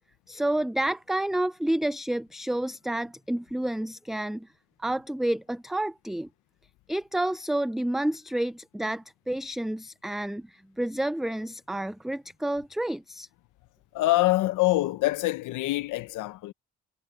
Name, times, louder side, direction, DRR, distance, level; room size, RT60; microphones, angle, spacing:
voice 1, 0.3-4.5 4.8-6.3 6.9-13.3, right 1 dB, ahead, 0.3 m, -29 dB
voice 2, 13.9-16.5, left 18 dB, 90° left, 0.8 m, -25 dB
cardioid pair, 90°, 30 cm